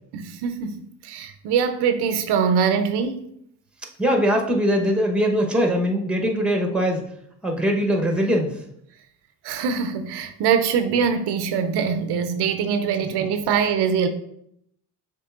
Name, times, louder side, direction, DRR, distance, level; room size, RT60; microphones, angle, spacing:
voice 1, 0.1-3.3 9.4-14.1, right 6 dB, 80° right, 0.6 m, -23 dB
voice 2, 4.0-7.1 7.4-8.6, equal, 5° right, 0.8 m, -21 dB
6.7 x 3.0 x 2.4 m
cardioid pair, 85°, 40 cm